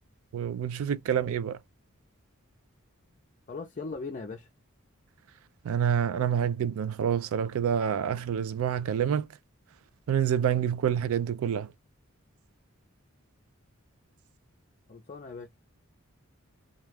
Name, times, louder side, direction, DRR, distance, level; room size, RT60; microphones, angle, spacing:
voice 1, 0.3-1.6 5.7-9.3 10.1-11.7, right 8 dB, 75° right, 0.3 m, -27 dB
voice 2, 3.5-4.5 14.9-15.5, left 4 dB, 35° left, 0.4 m, -39 dB
2.3 x 2.2 x 3.2 m
head